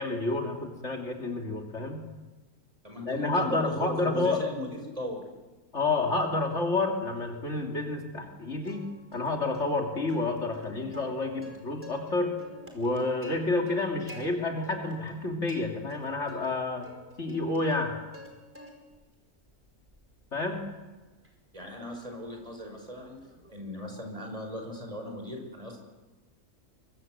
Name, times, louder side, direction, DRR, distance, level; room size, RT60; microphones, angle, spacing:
voice 1, 0.0-2.0 3.1-4.4 5.7-8.9 9.1-12.4 12.7-16.8 17.2-17.9 20.3-20.6, left 2 dB, 50° left, 1 dB, 3.2 m, -29 dB
voice 2, 2.8-5.2 21.5-23.2 23.5-25.8, left 1 dB, 25° right, 3 dB, 5.9 m, -38 dB
Plucked string instrument, 8.6-9.3 9.5-9.7 10.1-12.1 12.4-14.2 14.6-15.2 15.5-16.5 16.8-18.3 18.5-19.0 19.5-23.7, left 1 dB, 10° right, 5.0 m, -49 dB
24.5 x 23.0 x 7.8 m, 1.2 s
omnidirectional pair, 1.6 m